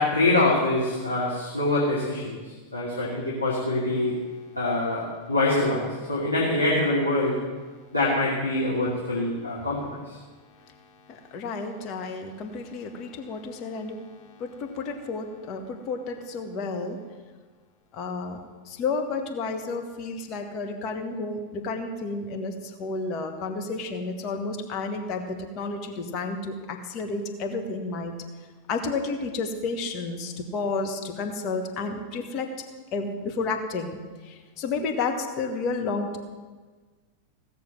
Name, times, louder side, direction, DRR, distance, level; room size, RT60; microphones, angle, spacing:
voice 1, 0.0-4.2 4.6-7.4 7.9-10.2, left 2 dB, 85° left, -7 dB, 2.6 m, -25 dB
voice 2, 10.4-17.0 17.9-28.1 28.7-32.5 32.9-36.2, left 3 dB, 35° left, 4 dB, 1.7 m, -31 dB
16.5 x 6.9 x 7.8 m, 1.4 s
figure-of-eight pair, 90°, 0 cm